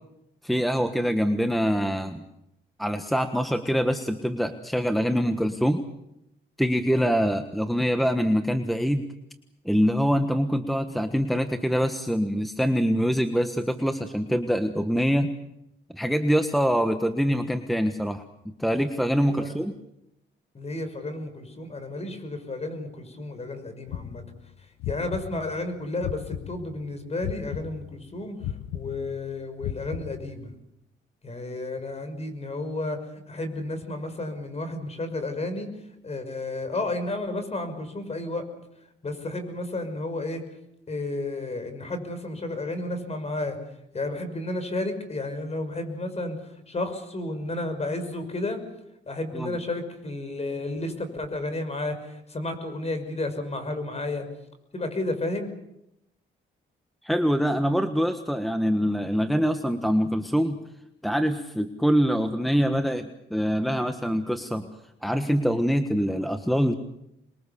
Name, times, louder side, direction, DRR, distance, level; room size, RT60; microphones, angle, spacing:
voice 1, 0.4-2.2 2.8-5.8 6.6-9.0 9.6-15.3 15.9-18.2 18.6-19.7 49.3-49.6 57.0-60.6 61.0-64.7 65.0-66.7, equal, ahead, 8 dB, 1.4 m, -24 dB
voice 2, 6.9-7.3 19.3-19.5 20.5-24.2 24.9-30.5 31.2-35.7 36.0-38.4 39.0-40.4 40.9-43.6 43.9-48.6 49.1-54.3 54.7-55.5, left 2 dB, 30° left, 8 dB, 5.8 m, -32 dB
sound 1, 23.9-26.8 27.2-30.5, left 11 dB, 90° left, 0.9 m, -36 dB
27.0 x 22.0 x 7.0 m, 0.83 s
cardioid pair, 90°, 20 cm